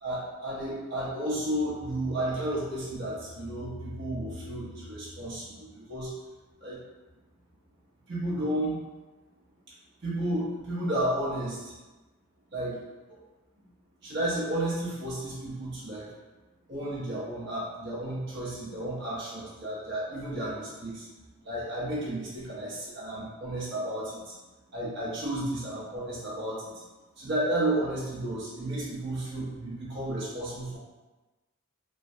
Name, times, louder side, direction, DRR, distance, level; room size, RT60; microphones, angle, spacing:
voice 1, 0.0-6.1 6.6-6.8 8.1-8.8 10.0-11.7 12.5-12.8 14.0-16.1 16.7-21.0 21.4-24.3 24.7-26.7 27.2-30.8, right 1 dB, 55° right, -9 dB, 0.8 m, -32 dB
3.1 x 2.2 x 2.6 m, 1.2 s
head